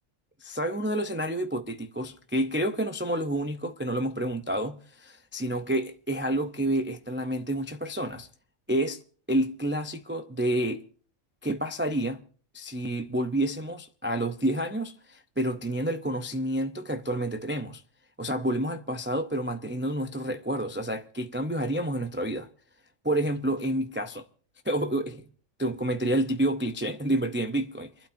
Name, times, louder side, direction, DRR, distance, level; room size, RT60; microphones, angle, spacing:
voice 1, 0.4-8.3 8.7-9.0 9.3-10.8 11.4-12.2 12.5-17.8 18.2-22.5 23.0-24.2 24.7-25.2 25.6-28.1, right 1 dB, 20° right, 0.3 m, -29 dB
29.5 x 12.0 x 2.6 m
omnidirectional pair, 1.3 m